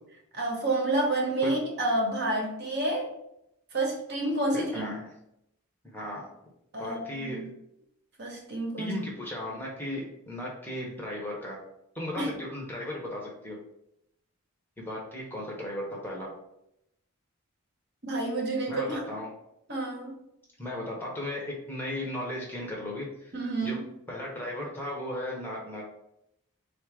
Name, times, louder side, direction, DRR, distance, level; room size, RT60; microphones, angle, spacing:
voice 1, 0.3-3.1 3.7-4.9 6.7-7.5 8.2-8.9 12.2-12.3 18.0-19.0 19.7-20.2 23.3-23.8, right 2 dB, 50° right, 0 dB, 0.9 m, -29 dB
voice 2, 5.8-6.3 6.8-7.4 8.8-11.6 11.9-13.6 14.8-16.3 18.7-19.3 20.6-23.3 23.6-23.8 24.1-25.8, left 1 dB, 10° left, -3 dB, 0.7 m, -36 dB
3.8 x 2.5 x 4.6 m, 0.81 s
head